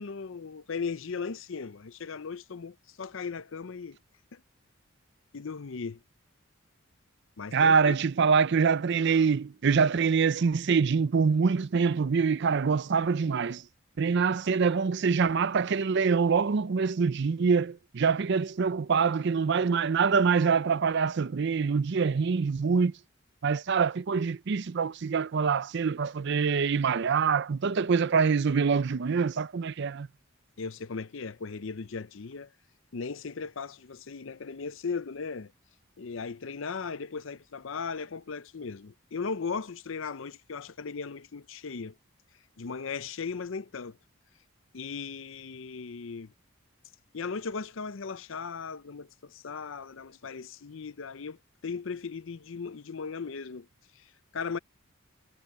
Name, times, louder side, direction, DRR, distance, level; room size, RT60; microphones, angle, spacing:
voice 1, 0.0-4.0 4.3-4.4 5.3-6.0 7.4-8.0 30.6-32.5 32.9-35.5 36.0-42.0 42.6-44.0 44.7-46.3 47.1-53.7 53.9-54.6, left 5 dB, 65° left, 0.6 m, -37 dB
voice 2, 7.5-13.6 14.0-22.9 23.4-30.1, right 5 dB, 55° right, 0.5 m, -25 dB
head